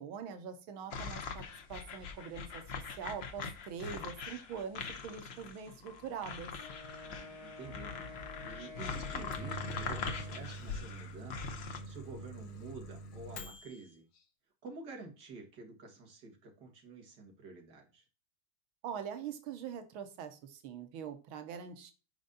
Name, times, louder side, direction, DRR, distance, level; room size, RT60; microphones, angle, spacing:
voice 1, 0.0-2.6 3.0-6.5 18.8-21.9, right 7 dB, 90° right, 8 dB, 1.7 m, -43 dB
sound 1, 0.9-11.8, left 5 dB, 75° left, 0.5 m, -42 dB
Wind instrument woodwind instrument, 6.6-10.6, left 2 dB, 20° right, 1.7 m, -50 dB
voice 2, 7.0-7.9 8.4-14.1 14.6-18.0, right 3 dB, 55° right, 3 dB, 2.0 m, -49 dB
Microwave oven, 9.1-13.9, right 1 dB, 90° left, 1.9 m, -45 dB
5.2 x 5.2 x 3.8 m, 0.33 s
omnidirectional pair, 2.2 m